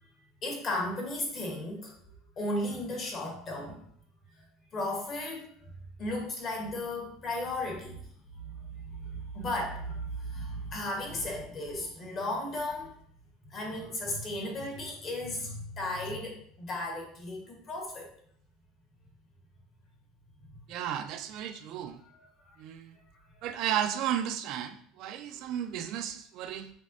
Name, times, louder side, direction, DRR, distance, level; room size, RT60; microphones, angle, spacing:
voice 1, 0.4-1.9 2.4-3.8 4.4-4.5 4.7-5.7 6.0-8.0 8.4-8.5 8.9-12.9 13.5-18.1 22.5-22.6 25.3-25.4, left 1 dB, 35° left, 0 dB, 1.2 m, -35 dB
voice 2, 20.7-22.0 22.6-23.0 23.4-26.7, right 10 dB, 50° right, 8 dB, 0.3 m, -34 dB
5.1 x 3.5 x 2.6 m, 0.64 s
cardioid pair, 150°, 0 cm